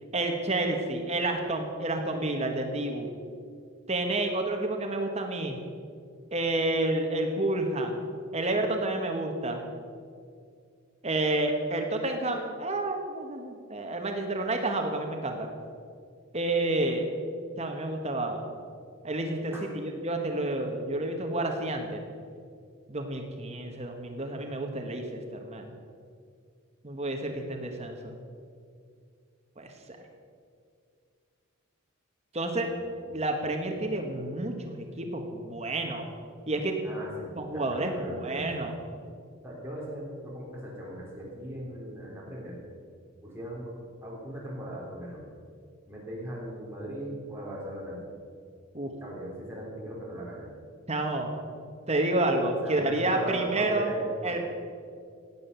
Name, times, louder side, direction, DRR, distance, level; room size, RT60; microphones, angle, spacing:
voice 1, 0.1-3.1 3.9-5.6 6.3-8.0 8.3-9.6 11.0-15.5 16.3-17.1 17.6-18.5 19.0-22.0 22.9-25.7 26.8-28.1 29.6-29.7 32.3-32.7 33.1-36.1 36.5-36.7 37.3-38.7 48.7-48.9 50.9-51.3 51.9-53.9 54.2-54.4, right 2 dB, 30° right, 3 dB, 1.3 m, -29 dB
voice 2, 32.5-33.2 36.8-38.7 39.4-42.6 43.2-43.7 44.0-45.2 45.9-48.1 49.0-50.5 52.6-54.4, right 1 dB, 10° right, -5 dB, 3.6 m, -39 dB
16.5 x 9.8 x 6.9 m, 2.2 s
head